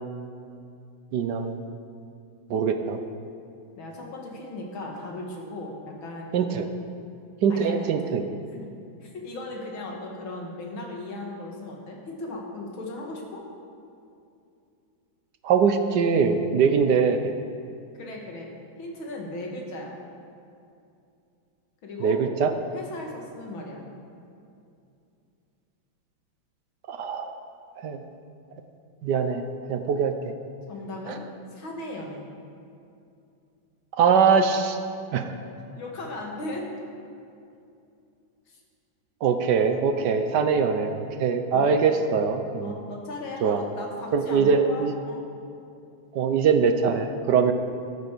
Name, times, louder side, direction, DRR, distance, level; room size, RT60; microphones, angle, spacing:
voice 1, 1.1-1.6 2.5-3.0 6.3-6.7 7.4-8.2 15.4-17.3 22.0-22.5 26.9-27.3 27.8-28.0 29.0-29.4 29.7-30.1 31.1-31.2 34.0-34.8 35.1-35.2 39.2-42.7 43.4-43.6 44.1-44.9 46.1-47.5, right 6 dB, 65° right, 7 dB, 1.2 m, -22 dB
voice 2, 3.8-6.3 7.5-7.9 8.5-8.6 9.0-13.4 18.0-18.5 18.8-20.0 21.8-22.2 22.7-23.8 30.7-31.2 31.5-32.2 35.7-36.7 38.5-38.6 41.5-41.7 42.6-45.2, left 2 dB, 85° left, 0 dB, 2.6 m, -37 dB
13.0 x 8.7 x 6.8 m, 2.6 s
omnidirectional pair, 2.1 m